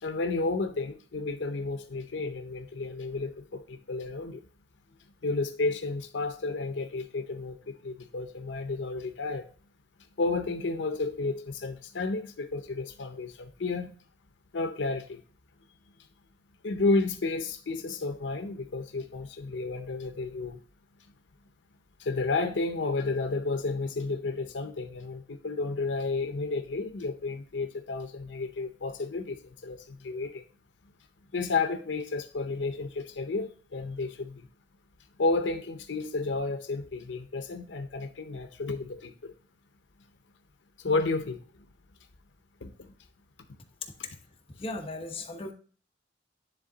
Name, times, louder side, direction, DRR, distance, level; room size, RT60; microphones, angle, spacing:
voice 1, 0.0-4.4 5.2-9.4 10.2-13.9 14.5-15.2 16.6-20.6 22.0-30.4 31.3-34.5 35.2-39.3 40.8-41.4 42.6-42.7, left 3 dB, 80° left, 8 dB, 0.6 m, -31 dB
voice 2, 44.6-45.5, left 2 dB, 30° left, 2 dB, 1.0 m, -36 dB
10.0 x 3.6 x 3.9 m, 0.42 s
head